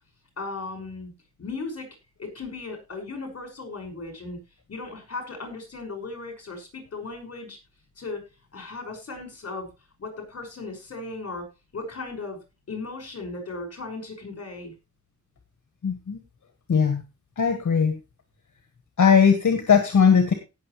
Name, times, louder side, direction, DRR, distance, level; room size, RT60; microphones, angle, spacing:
voice 1, 0.4-1.1 1.4-1.9 2.2-4.4 4.7-7.6 8.0-8.2 8.5-9.7 10.0-11.5 11.7-12.4 12.7-14.7, left 3 dB, 55° left, 3 dB, 5.8 m, -36 dB
voice 2, 15.8-16.2 16.7-17.0 17.4-18.0 19.0-20.3, left 6 dB, 75° left, 6 dB, 1.9 m, -19 dB
18.0 x 7.0 x 3.2 m, 0.28 s
wide cardioid pair, 120°, 30 cm